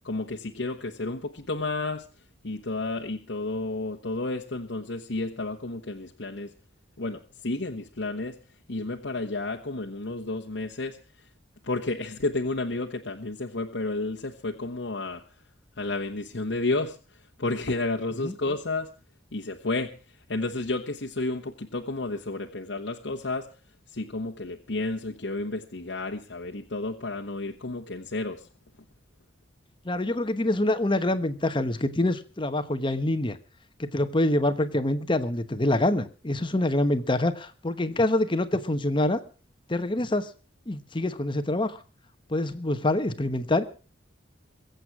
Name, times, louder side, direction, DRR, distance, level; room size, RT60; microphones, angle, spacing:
voice 1, 0.0-2.1 2.4-6.5 7.0-8.4 8.7-11.0 11.6-15.2 15.8-17.0 17.4-18.9 19.3-19.9 20.3-23.5 23.9-28.5, left 2 dB, 70° left, 1 dB, 1.2 m, -31 dB
voice 2, 29.8-33.4 33.8-39.2 39.7-40.3 40.7-41.8 42.3-43.6, left 1 dB, 25° left, 10 dB, 1.0 m, -26 dB
22.5 x 8.0 x 6.0 m, 0.38 s
head